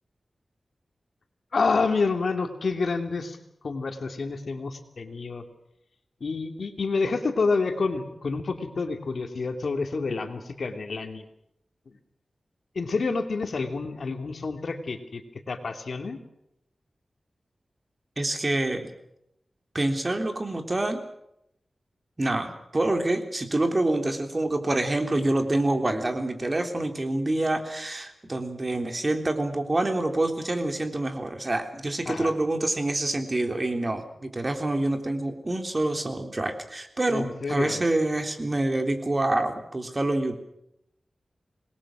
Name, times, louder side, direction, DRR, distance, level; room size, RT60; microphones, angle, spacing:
voice 1, 1.5-3.4 3.6-5.4 6.2-11.2 12.7-15.2 15.5-16.2 32.1-32.3 37.1-37.8, left 4 dB, 70° left, 6 dB, 2.9 m, -28 dB
voice 2, 18.2-18.8 19.7-21.0 22.2-40.3, right 2 dB, 30° right, 6 dB, 3.5 m, -27 dB
27.5 x 21.0 x 6.3 m, 0.78 s
wide cardioid pair, 80°, 0 cm